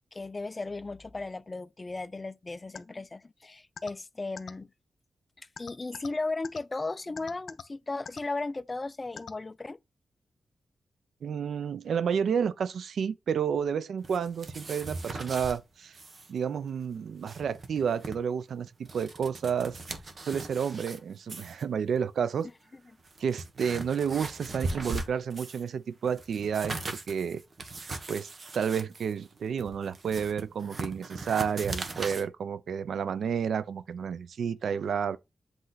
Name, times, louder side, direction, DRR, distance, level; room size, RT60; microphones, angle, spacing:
voice 1, 0.1-4.7 5.6-9.8, left 3 dB, 25° left, 0.3 m, -36 dB
sound 1, 2.7-2.8 3.8-3.9 4.4-4.5 5.6-6.1 6.4-6.6 7.2-7.6 8.1-8.2 9.2-9.3, left 6 dB, 70° left, 0.6 m, -40 dB
voice 2, 11.2-16.0 16.3-19.8 20.3-22.5 23.2-27.4 28.1-35.2, right 7 dB, 80° right, 0.4 m, -31 dB
sound 2, 14.0-15.6 15.9-16.3 16.6-16.7 17.1-18.2 18.7-21.0 21.3-21.6 22.4-22.5 23.0-25.7 26.0-32.2, right 2 dB, 45° right, 1.1 m, -39 dB
7.8 x 3.1 x 3.9 m
wide cardioid pair, 110°, 0 cm